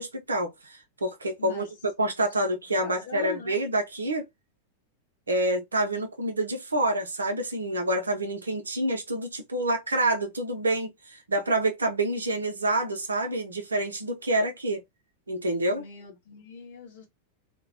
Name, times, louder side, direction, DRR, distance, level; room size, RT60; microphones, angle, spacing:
voice 1, 0.0-1.7 2.0-4.2 5.3-14.8 15.3-15.8, right 1 dB, 75° right, 0.5 m, -27 dB
voice 2, 2.8-3.6 15.7-17.1, left 6 dB, 55° left, 0.8 m, -42 dB
2.2 x 2.1 x 2.6 m
figure-of-eight pair, 90°, 0 cm